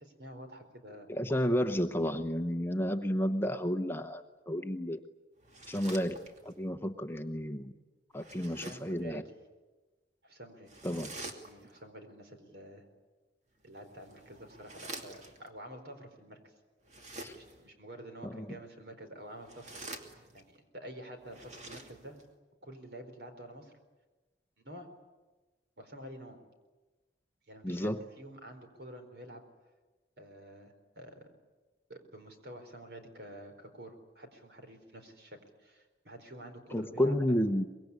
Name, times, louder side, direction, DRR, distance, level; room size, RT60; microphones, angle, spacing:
voice 1, 0.0-1.4 8.2-9.2 10.2-10.8 11.3-12.9 13.6-16.5 17.3-19.8 20.3-22.2 22.6-23.7 24.6-24.9 25.8-26.4 27.5-29.4 30.2-31.2 31.9-37.3, right 1 dB, 65° right, 6 dB, 4.5 m, -49 dB
voice 2, 1.1-5.0 5.7-6.2 6.4-7.7 8.1-9.2 10.8-11.1 17.2-17.3 18.3-18.6 27.6-28.0 36.7-37.6, equal, 10° left, 7 dB, 0.9 m, -31 dB
sound 1, 5.4-6.6 8.1-9.0 10.7-11.8 13.6-15.5 16.8-17.7 19.3-20.6 21.2-22.3, right 2 dB, 40° right, 2.6 m, -47 dB
24.5 x 21.5 x 9.9 m, 1.2 s
head